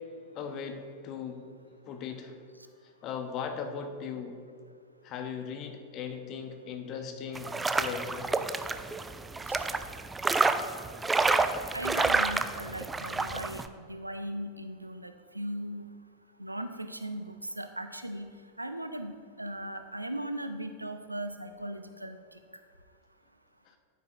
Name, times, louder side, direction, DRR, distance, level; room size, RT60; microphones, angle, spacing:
voice 1, 0.3-1.4 1.8-2.3 3.0-4.4 5.0-7.5 7.8-8.3, left 6 dB, 35° left, 6 dB, 0.8 m, -38 dB
sound 1, 7.3-13.7, right 3 dB, 10° right, 0.4 m, -29 dB
voice 2, 11.7-15.9 16.4-18.3 18.6-19.1 19.4-22.2, right 1 dB, 85° right, 9 dB, 0.5 m, -38 dB
11.0 x 9.5 x 2.5 m, 2.2 s
figure-of-eight pair, 90°, 0 cm